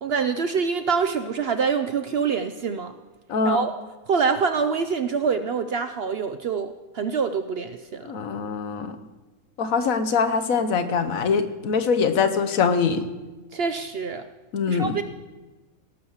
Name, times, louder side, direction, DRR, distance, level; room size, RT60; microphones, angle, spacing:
voice 1, 0.0-2.9 3.4-3.7 4.1-8.1 13.5-14.3 14.7-15.0, right 5 dB, 60° right, 10 dB, 0.7 m, -25 dB
voice 2, 3.3-3.6 8.1-8.9 9.6-13.0 14.5-15.0, left 5 dB, 75° left, 9 dB, 1.3 m, -23 dB
18.0 x 6.3 x 7.1 m, 1.2 s
omnidirectional pair, 1.5 m